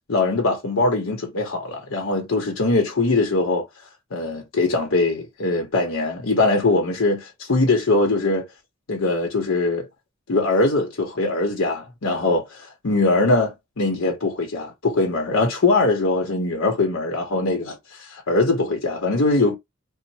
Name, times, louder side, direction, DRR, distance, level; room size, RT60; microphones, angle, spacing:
voice 1, 0.1-3.6 4.1-8.5 8.9-9.9 10.3-19.6, left 2 dB, 80° left, 0.8 m, -21 dB
3.1 x 2.1 x 2.7 m
head